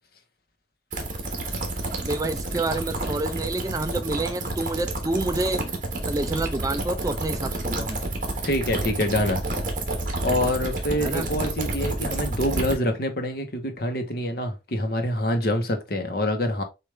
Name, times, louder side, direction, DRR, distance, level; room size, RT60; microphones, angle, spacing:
sound 1, 0.9-12.7, right 2 dB, 45° right, 1.3 m, -29 dB
voice 1, 2.0-5.8 6.0-8.0 11.0-11.3, right 2 dB, 20° right, 0.4 m, -28 dB
voice 2, 8.4-9.4 10.2-16.6, left 1 dB, 55° left, 0.9 m, -26 dB
6.6 x 2.5 x 3.2 m
head